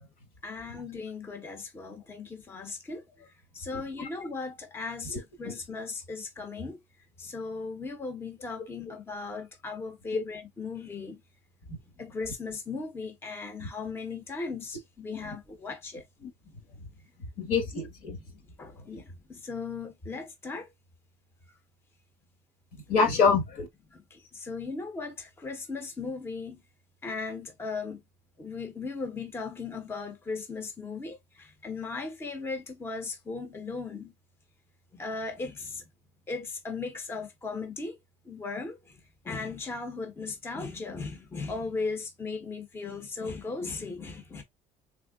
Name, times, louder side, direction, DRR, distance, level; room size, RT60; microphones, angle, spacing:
voice 1, 0.4-3.3 3.5-6.8 7.2-11.2 12.0-16.0 18.6-20.7 23.9-26.6 27.0-28.0 28.4-34.1 34.9-35.8 36.3-38.0 38.3-38.8 39.2-44.4, left 4 dB, 15° left, 0.6 m, -37 dB
voice 2, 3.7-4.1 5.0-5.5 10.1-10.2 13.6-13.7 15.1-15.4 16.2-16.3 17.4-18.2 22.9-23.7, left 5 dB, 70° left, 1.5 m, -27 dB
3.5 x 3.4 x 2.2 m
cardioid pair, 145°, 15 cm